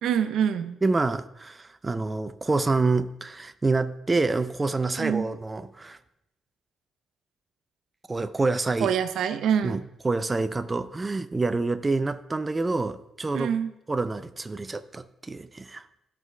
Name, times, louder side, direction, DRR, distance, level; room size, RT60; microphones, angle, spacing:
voice 1, 0.0-0.8 5.0-5.3 8.8-9.8 13.3-13.7, right 8 dB, 75° right, 10 dB, 0.6 m, -25 dB
voice 2, 0.8-6.0 8.1-8.9 9.6-13.5 13.9-15.8, right 3 dB, 20° right, 10 dB, 0.4 m, -27 dB
13.5 x 4.7 x 3.3 m, 0.89 s
cardioid pair, 90°, 0 cm